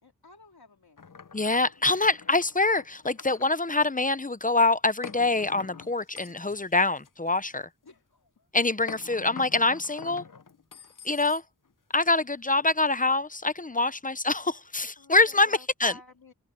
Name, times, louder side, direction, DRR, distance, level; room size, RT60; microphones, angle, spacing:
voice 1, 0.0-1.0 7.8-8.5 10.7-10.9 13.7-14.0 15.0-16.3, left 3 dB, 90° left, 3.6 m, -52 dB
sound 1, 1.0-3.5 5.0-7.6 8.9-11.7, left 6 dB, 60° left, 0.9 m, -46 dB
voice 2, 1.3-7.7 8.5-10.2 11.0-11.4 11.9-15.9, left 3 dB, 20° left, 0.8 m, -25 dB
open air
wide cardioid pair, 45°, 36 cm